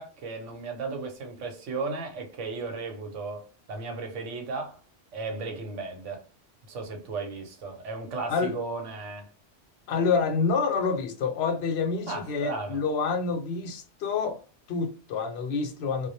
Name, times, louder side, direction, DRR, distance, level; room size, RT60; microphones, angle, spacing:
voice 1, 0.0-4.8 5.1-6.2 6.7-9.3 12.1-12.8, right 3 dB, 90° right, 1.0 m, -35 dB
voice 2, 9.9-14.4 14.7-16.1, left 5 dB, 70° left, 0.8 m, -27 dB
2.2 x 2.0 x 2.7 m
omnidirectional pair, 1.2 m